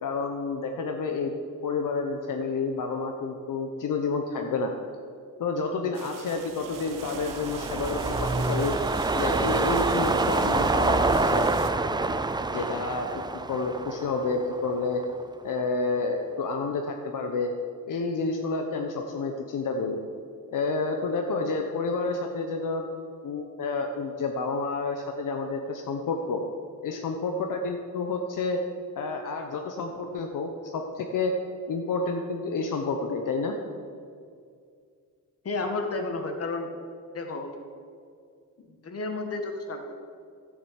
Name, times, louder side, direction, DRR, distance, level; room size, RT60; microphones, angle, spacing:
voice 1, 0.0-1.3 1.6-4.7 5.4-8.8 9.1-11.5 12.5-15.0 15.4-17.5 17.9-20.0 20.5-22.8 23.2-26.4 26.8-28.6 29.0-31.3 31.7-33.5, left 4 dB, 70° left, 3 dB, 1.1 m, -29 dB
sound 1, 5.9-11.7, right 7 dB, 75° right, 1.1 m, -41 dB
sound 2, 6.8-15.2 15.6-15.7, right 3 dB, 15° right, 0.5 m, -27 dB
voice 2, 35.4-36.7 37.1-37.5 38.8-39.9, left 3 dB, 45° left, 4 dB, 1.8 m, -31 dB
13.0 x 8.0 x 8.1 m, 2.2 s
wide cardioid pair, 145°, 32 cm